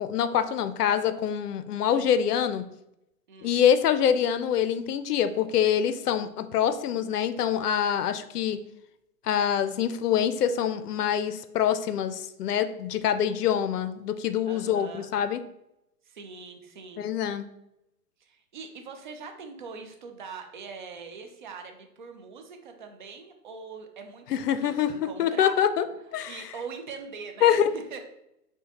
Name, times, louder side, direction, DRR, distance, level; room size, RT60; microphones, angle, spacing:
voice 1, 0.0-2.6 3.4-8.6 9.2-15.4 17.0-17.5 24.3-25.8 26.1-26.4 27.4-27.7, left 9 dB, 75° left, 11 dB, 0.6 m, -25 dB
voice 2, 14.5-15.1 16.1-17.1 18.2-25.6 26.3-28.0, right 5 dB, 35° right, 5 dB, 0.4 m, -42 dB
5.6 x 2.2 x 2.9 m, 0.84 s
hypercardioid pair, 130°, 47 cm